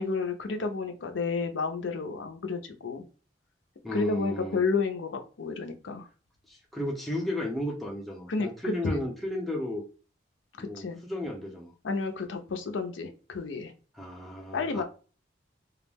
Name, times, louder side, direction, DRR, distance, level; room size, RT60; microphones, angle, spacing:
voice 1, 0.0-3.0 3.9-6.1 8.3-9.0 10.6-11.0 11.8-13.7 14.5-14.8, left 4 dB, 70° left, 6 dB, 0.4 m, -31 dB
voice 2, 3.8-4.6 6.5-9.8 10.6-11.7 13.9-14.8, left 1 dB, ahead, -1 dB, 0.5 m, -34 dB
2.3 x 2.0 x 3.3 m, 0.36 s
head